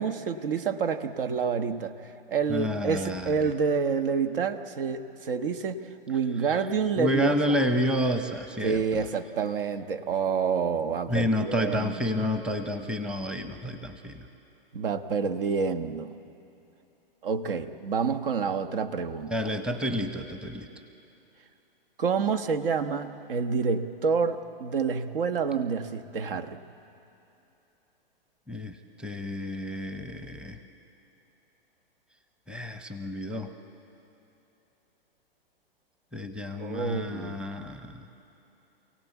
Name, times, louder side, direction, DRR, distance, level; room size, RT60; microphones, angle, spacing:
voice 1, 0.0-5.8 6.1-7.3 8.6-12.0 14.7-16.1 17.2-19.3 22.0-26.6 36.6-37.4, right 5 dB, 65° right, 9 dB, 1.4 m, -28 dB
voice 2, 2.5-3.3 7.0-9.1 11.1-14.3 19.3-20.7 28.5-30.6 32.5-33.5 36.1-38.1, left 1 dB, 5° right, 7 dB, 0.9 m, -30 dB
27.5 x 17.5 x 8.3 m, 2.8 s
hypercardioid pair, 125°, 30 cm